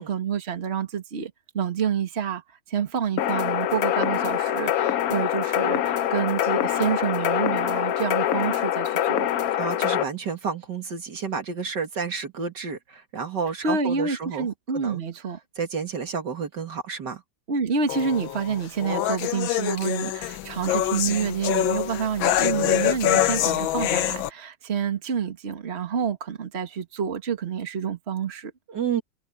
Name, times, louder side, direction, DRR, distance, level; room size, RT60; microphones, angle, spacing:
voice 1, 0.0-9.3 13.6-15.4 17.5-28.5, right 6 dB, 35° right, 1.9 m, -28 dB
sound 1, 3.2-10.0, left 11 dB, 60° left, 1.0 m, -24 dB
voice 2, 9.6-14.5 14.7-15.0 15.6-17.2 28.7-29.0, right 6 dB, 60° right, 2.5 m, -30 dB
sound 2, 17.9-24.3, left 12 dB, 85° left, 1.6 m, -25 dB
omnidirectional pair, 2.1 m